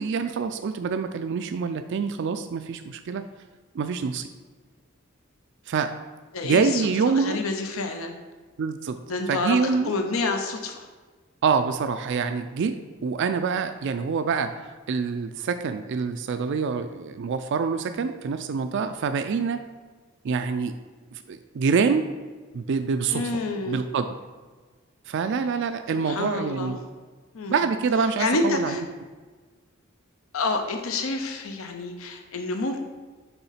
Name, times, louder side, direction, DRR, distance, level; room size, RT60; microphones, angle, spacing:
voice 1, 0.0-3.2 3.7-4.3 5.7-5.9 6.4-7.4 8.6-9.0 9.3-9.9 11.4-12.8 13.0-14.5 14.9-19.6 20.2-20.7 21.1-22.0 22.5-23.2 23.7-24.1 25.1-26.8 27.5-28.8, right 5 dB, 60° right, 8 dB, 0.4 m, -26 dB
voice 2, 6.3-8.1 9.1-10.9 23.1-23.8 26.0-26.8 27.3-27.6 28.2-28.8 30.3-32.8, left 3 dB, 75° left, 5 dB, 0.7 m, -28 dB
6.9 x 3.7 x 5.6 m, 1.4 s
head